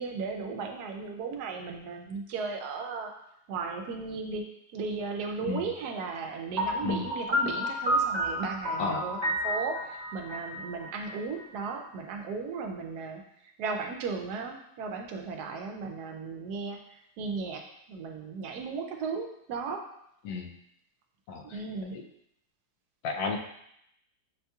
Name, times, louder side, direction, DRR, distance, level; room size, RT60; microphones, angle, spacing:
voice 1, 0.0-3.1 3.5-4.4 4.7-16.8 17.2-17.6 17.9-19.8 21.4-21.9, right 4 dB, 80° right, 3 dB, 1.1 m, -36 dB
Piano, 6.6-11.4, equal, 55° right, 0.4 m, -30 dB
voice 2, 8.8-9.1 20.2-20.5 21.3-21.6 21.9-22.0 23.0-23.4, left 4 dB, 75° left, 3 dB, 1.1 m, -32 dB
6.0 x 2.8 x 2.3 m, 0.75 s
omnidirectional pair, 1.7 m